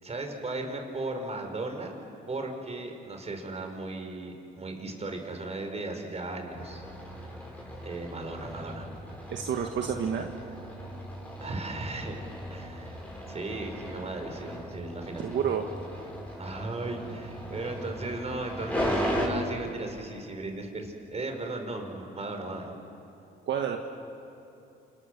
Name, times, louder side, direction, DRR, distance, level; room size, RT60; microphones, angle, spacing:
voice 1, 0.0-2.0 2.3-6.8 7.8-8.9 11.4-12.2 12.5-13.0 13.3-15.3 16.4-22.7, right 2 dB, 35° right, 4 dB, 4.8 m, -36 dB
sound 1, 6.5-19.3, equal, 5° left, 6.7 m, -37 dB
voice 2, 9.3-10.3 15.2-15.7 23.5-23.8, right 8 dB, 65° right, 3 dB, 1.6 m, -29 dB
28.0 x 28.0 x 6.7 m, 2.8 s
cardioid pair, 90°, 20 cm